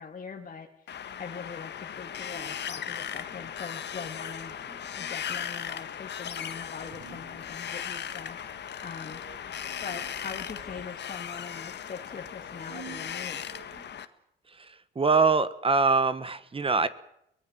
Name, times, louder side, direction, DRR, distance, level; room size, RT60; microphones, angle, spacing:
voice 1, 0.0-9.2 9.8-13.6, left 5 dB, 40° left, 1 dB, 2.3 m, -42 dB
Wind, 0.9-14.1, left 9 dB, 60° left, 1.7 m, -37 dB
sound 1, 2.0-13.9, right 6 dB, 65° right, 3.8 m, -52 dB
voice 2, 14.9-16.9, right 4 dB, 30° right, 14 dB, 1.4 m, -23 dB
23.5 x 19.0 x 7.5 m, 0.75 s
cardioid pair, 90°, 20 cm